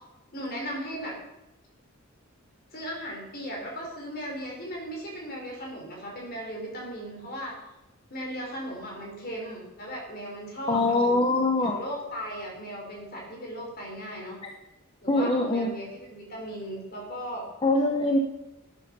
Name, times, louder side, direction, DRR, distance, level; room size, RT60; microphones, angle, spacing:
voice 1, 0.3-1.1 2.7-7.5 8.1-11.2 11.6-14.4 15.0-17.4, equal, 45° left, -1 dB, 4.5 m, -37 dB
voice 2, 10.7-11.8 14.4-14.5 15.1-15.7 17.6-18.2, left 2 dB, 25° left, 3 dB, 0.9 m, -23 dB
12.5 x 10.5 x 5.3 m, 0.94 s
head